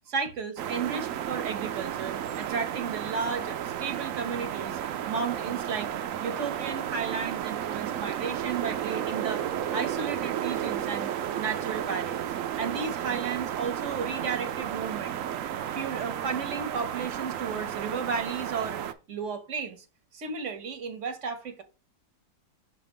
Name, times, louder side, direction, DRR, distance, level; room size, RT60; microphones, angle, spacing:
voice 1, 0.1-4.8 5.1-5.9 6.2-9.4 9.7-12.3 12.6-15.2 15.7-18.8 19.1-19.8 20.1-21.6, right 5 dB, 50° right, 1.0 m, -33 dB
sound 1, 0.6-18.9, right 10 dB, 80° right, 0.7 m, -33 dB
6.5 x 2.9 x 5.2 m
omnidirectional pair, 1.9 m